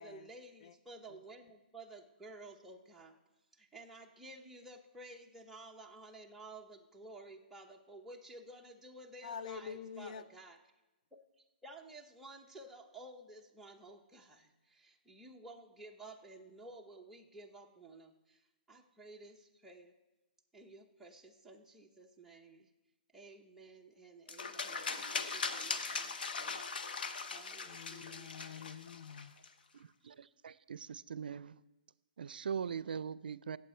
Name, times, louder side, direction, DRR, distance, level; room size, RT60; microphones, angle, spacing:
voice 1, 0.0-3.2 3.5-10.6 11.1-18.4 18.7-19.9 20.5-22.7 23.1-26.6 27.3-28.3, right 2 dB, 5° right, -1 dB, 0.9 m, -53 dB
voice 2, 9.2-10.2 27.7-29.3, left 7 dB, 50° left, 12 dB, 0.6 m, -46 dB
sound 1, 24.3-29.5, left 4 dB, 75° left, 1.0 m, -40 dB
voice 3, 29.7-31.6 32.2-33.6, right 7 dB, 80° right, 19 dB, 0.4 m, -41 dB
16.0 x 7.5 x 4.4 m, 1.0 s
hypercardioid pair, 150°, 5 cm